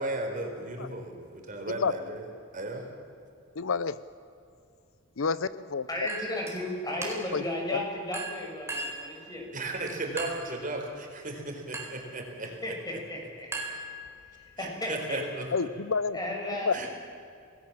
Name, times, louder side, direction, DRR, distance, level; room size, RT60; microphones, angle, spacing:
voice 1, 0.0-2.3 2.5-2.9 9.5-12.5 14.6-15.7 16.7-16.9, right 2 dB, 40° right, 2 dB, 4.4 m, -35 dB
voice 2, 3.6-4.0 5.2-5.9 7.3-7.4 7.7-7.8 15.5-16.2 16.7-16.8, left 5 dB, 75° left, 16 dB, 0.7 m, -28 dB
voice 3, 5.9-9.5 12.4-13.7 14.3-15.2 16.1-16.9, left 1 dB, 20° left, 0 dB, 6.3 m, -35 dB
Chink clink, 6.1-6.6 7.0-7.5 8.1-9.1 10.2-10.6 11.7-12.1 13.5-14.3, right 2 dB, 15° right, 4.4 m, -37 dB
28.0 x 19.0 x 7.5 m, 2.5 s
head